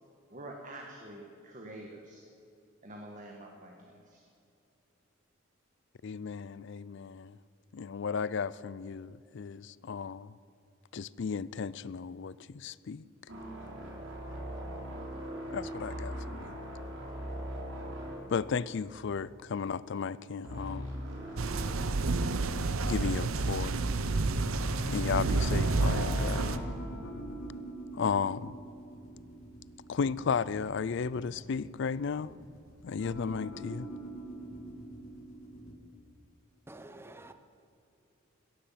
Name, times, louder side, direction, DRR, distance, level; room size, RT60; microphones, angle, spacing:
voice 1, 0.3-2.2 2.8-4.2, right 1 dB, 40° right, 1.5 m, -47 dB
voice 2, 6.0-7.4 7.7-10.3 10.9-13.0 15.5-16.6 18.3-20.9 22.8-23.8 24.9-26.7 27.9-28.6 29.9-32.3 32.8-33.9, left 6 dB, 60° left, 0.4 m, -34 dB
sound 1, 13.3-19.4 19.6-19.9 20.4-21.9 22.4-22.5 24.6-26.5, equal, 65° right, 3.5 m, -40 dB
sound 2, 21.4-26.6, right 3 dB, 85° right, 0.8 m, -29 dB
sound 3, 26.5-35.7, right 1 dB, 85° left, 2.7 m, -47 dB
voice 3, 36.7-37.3, right 2 dB, 10° right, 0.8 m, -48 dB
17.0 x 14.0 x 5.8 m
head